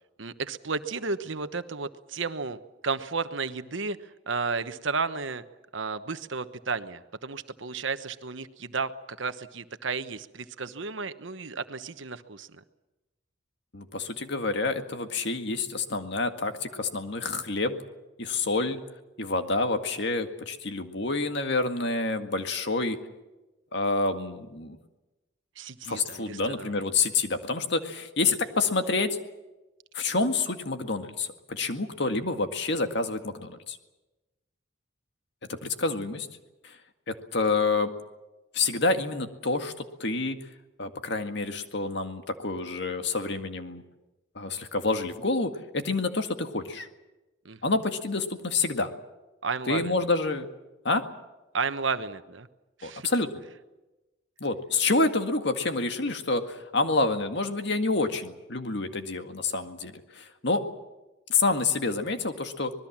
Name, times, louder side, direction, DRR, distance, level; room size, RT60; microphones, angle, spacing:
voice 1, 0.2-5.4 5.7-12.5 25.6-26.7 47.4-47.6 49.4-49.9 51.5-52.5 52.8-53.1, right 4 dB, 70° right, 11 dB, 1.2 m, -33 dB
voice 2, 13.7-17.8 18.2-18.8 19.2-23.0 23.7-24.8 25.8-29.2 29.9-33.8 35.5-36.3 36.6-36.8 37.1-37.9 38.5-40.4 40.8-43.8 44.4-46.9 47.6-48.9 49.7-50.5 50.8-51.1 52.8-53.4 54.4-60.6 61.3-62.7, left 3 dB, 60° left, 7 dB, 2.0 m, -28 dB
25.5 x 20.5 x 7.4 m, 1.1 s
head